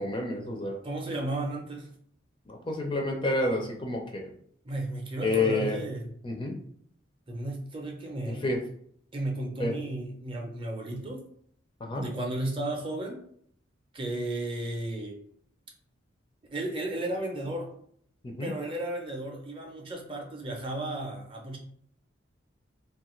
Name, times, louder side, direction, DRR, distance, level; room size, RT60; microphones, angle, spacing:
voice 1, 0.0-0.8 2.5-4.3 5.2-5.8 6.2-6.6 8.3-8.6 9.6-9.7 11.8-12.0 18.2-18.5, left 2 dB, 25° left, 2 dB, 0.4 m, -29 dB
voice 2, 0.8-1.9 4.6-6.1 7.3-8.5 9.1-11.2 11.9-13.2 13.9-15.2 16.5-17.7 18.4-21.6, right 1 dB, 25° right, 1 dB, 0.5 m, -34 dB
2.8 x 2.3 x 3.0 m, 0.64 s
head